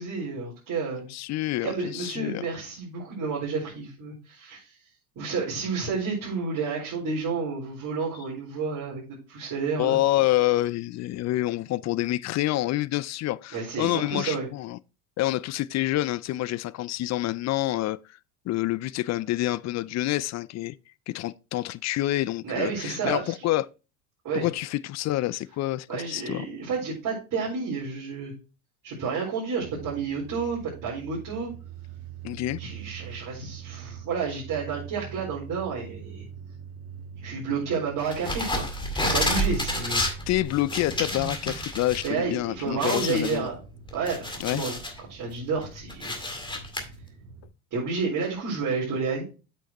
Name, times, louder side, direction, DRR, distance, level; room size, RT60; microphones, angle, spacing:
voice 1, 0.0-1.0 1.6-4.7 5.2-10.0 13.5-14.5 22.4-23.5 24.2-24.5 25.9-28.3 28.8-31.5 32.6-36.2 37.2-38.7 38.9-40.0 42.0-43.5 43.9-44.7 45.1-46.2 47.7-49.2, right 5 dB, 50° right, 4.2 m, -30 dB
voice 2, 1.1-2.4 9.8-14.8 15.2-18.0 18.5-20.8 21.1-23.7 24.3-26.5 32.2-32.6 40.3-43.5 44.4-44.6, left 16 dB, 40° left, 0.4 m, -27 dB
sound 1, 29.6-47.5, right 7 dB, 70° right, 1.7 m, -44 dB
sound 2, 38.1-42.1 42.4-42.5 42.8-45.0 45.4-46.8, left 1 dB, 10° left, 2.1 m, -30 dB
8.3 x 6.3 x 2.9 m
hypercardioid pair, 75°, 42 cm